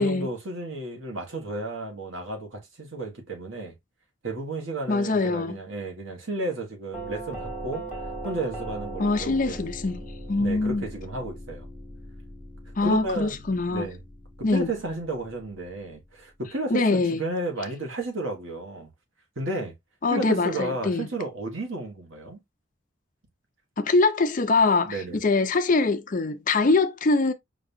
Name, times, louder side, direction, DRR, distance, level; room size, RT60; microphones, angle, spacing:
voice 1, 0.0-3.7 4.2-7.8 8.2-9.6 10.4-11.7 12.8-13.4 13.7-14.0 14.4-18.9 19.3-19.7 20.1-22.4 24.9-25.2, right 2 dB, 85° right, 1.4 m, -32 dB
voice 2, 4.9-5.6 9.0-10.0 10.3-10.9 12.8-13.9 14.4-14.7 16.7-17.2 20.0-21.1 23.8-27.3, left 3 dB, 40° left, 0.5 m, -23 dB
Doorbell, 6.9-15.8, right 1 dB, 5° right, 1.6 m, -39 dB
5.2 x 2.6 x 2.6 m
head